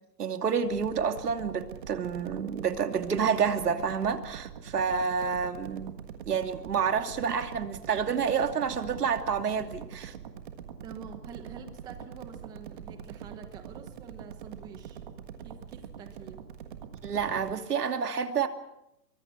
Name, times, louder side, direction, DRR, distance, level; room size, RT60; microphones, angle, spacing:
voice 1, 0.2-10.1 17.0-18.5, right 6 dB, 70° right, 6 dB, 2.8 m, -29 dB
sound 1, 0.6-17.5, right 8 dB, 30° right, 1.6 m, -44 dB
voice 2, 10.8-15.0 15.4-16.4, right 6 dB, 10° right, 7 dB, 1.2 m, -47 dB
25.0 x 23.5 x 5.9 m, 0.83 s
hypercardioid pair, 165°, 48 cm